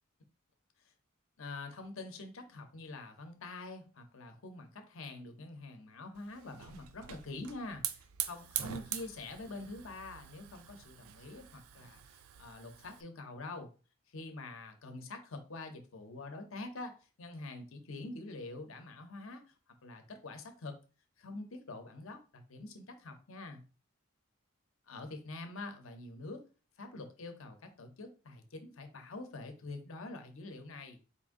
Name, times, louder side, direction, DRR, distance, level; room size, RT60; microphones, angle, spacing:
voice 1, 1.4-13.7 14.1-19.5 19.8-20.8 21.2-23.6 24.9-26.4 26.8-31.0, left 2 dB, 70° left, 6 dB, 0.8 m, -46 dB
Hiss / Fire, 6.2-13.0, right 10 dB, 80° right, 0.4 m, -43 dB
4.2 x 2.6 x 3.6 m, 0.35 s
head